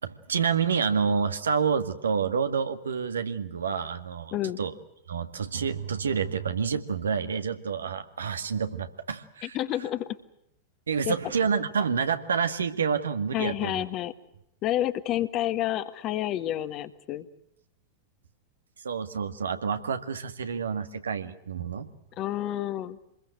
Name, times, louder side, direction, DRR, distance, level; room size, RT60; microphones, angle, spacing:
voice 1, 0.0-4.7 5.1-9.6 10.9-13.8 18.8-21.9, right 6 dB, 70° right, 8 dB, 2.0 m, -28 dB
voice 2, 9.4-10.1 11.0-11.1 13.3-14.1 14.6-17.3 22.2-23.0, left 13 dB, 35° left, 11 dB, 1.7 m, -29 dB
27.0 x 21.5 x 8.0 m, 0.78 s
figure-of-eight pair, 90°, 0 cm